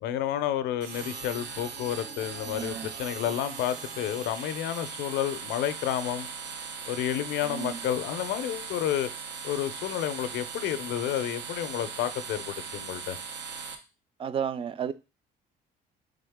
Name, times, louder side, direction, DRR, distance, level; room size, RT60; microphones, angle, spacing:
voice 1, 0.0-6.3 6.9-9.1 9.4-13.2, left 11 dB, 85° left, 0.5 m, -30 dB
sound 1, 0.8-13.7, right 6 dB, 85° right, 0.8 m, -39 dB
sound 2, 1.3-5.4, right 4 dB, 70° right, 1.1 m, -51 dB
voice 2, 2.4-2.9 7.4-7.9 14.2-14.9, right 8 dB, 30° right, 0.4 m, -33 dB
3.8 x 3.5 x 3.5 m
cardioid pair, 110°, 17 cm